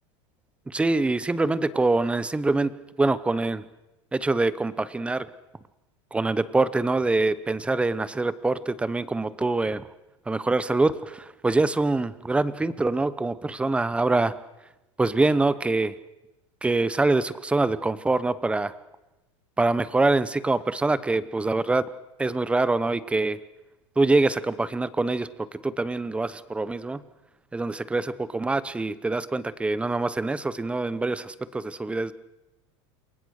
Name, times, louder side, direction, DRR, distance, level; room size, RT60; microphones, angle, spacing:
voice 1, 0.7-2.7 3.0-3.6 4.1-5.3 6.1-9.8 10.3-14.3 15.0-15.9 16.6-18.7 19.6-21.8 22.2-23.4 24.0-27.0 27.5-32.1, right 3 dB, 5° right, 16 dB, 0.8 m, -24 dB
28.5 x 22.5 x 6.5 m, 0.98 s
supercardioid pair, 145°, 15 cm